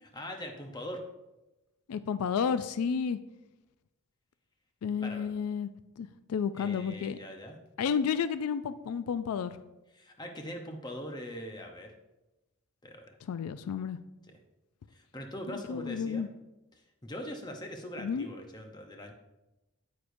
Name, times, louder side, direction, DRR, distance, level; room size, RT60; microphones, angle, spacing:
voice 1, 0.0-1.0 5.0-5.3 6.5-7.6 9.9-11.9 12.8-13.2 14.3-14.4 14.9-16.3 17.0-19.1, equal, 20° left, 3 dB, 0.8 m, -42 dB
voice 2, 1.9-3.2 4.8-5.7 6.0-7.2 7.8-9.6 13.3-14.0 15.7-16.3 18.0-18.3, left 6 dB, 85° left, 13 dB, 0.4 m, -31 dB
9.3 x 8.4 x 2.6 m, 1.0 s
head